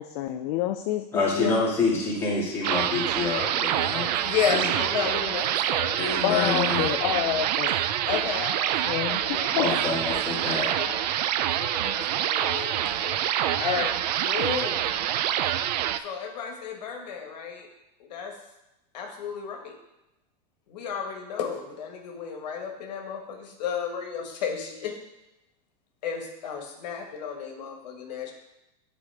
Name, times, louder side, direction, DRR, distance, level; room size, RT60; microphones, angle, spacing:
voice 1, 0.0-1.6 6.2-7.7 8.8-9.7, left 12 dB, 45° left, 6 dB, 0.4 m, -28 dB
voice 2, 1.1-4.2 4.5-4.6 6.0-6.9 9.6-10.7, left 3 dB, 10° left, -7 dB, 2.0 m, -27 dB
sound 1, 2.6-16.0, right 11 dB, 80° right, 0.4 m, -26 dB
voice 3, 4.2-6.0 8.0-11.0 11.5-13.2 13.6-15.0 16.0-17.7 18.0-18.3 18.9-19.7 20.7-25.0 26.0-28.3, left 7 dB, 85° left, 2 dB, 1.4 m, -33 dB
9.9 x 4.1 x 3.4 m, 0.94 s
supercardioid pair, 160°, 21 cm